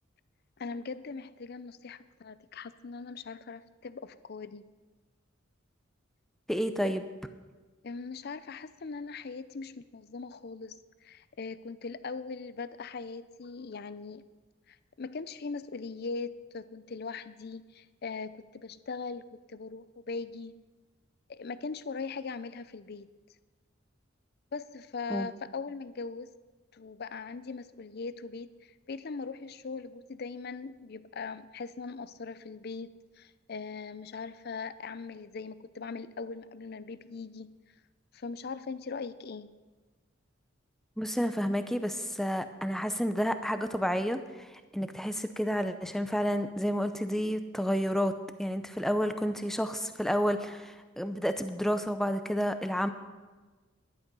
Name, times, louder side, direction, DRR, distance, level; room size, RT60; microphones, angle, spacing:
voice 1, 0.6-4.6 6.8-6.9 7.8-14.3 14.7-20.5 21.3-23.1 24.5-26.3 26.7-37.5 38.1-39.5, left 4 dB, 55° left, 15 dB, 0.5 m, -40 dB
voice 2, 6.5-7.1 25.1-25.3 41.0-48.1 48.4-52.9, equal, ahead, 9 dB, 0.6 m, -30 dB
11.5 x 11.0 x 5.4 m, 1.3 s
head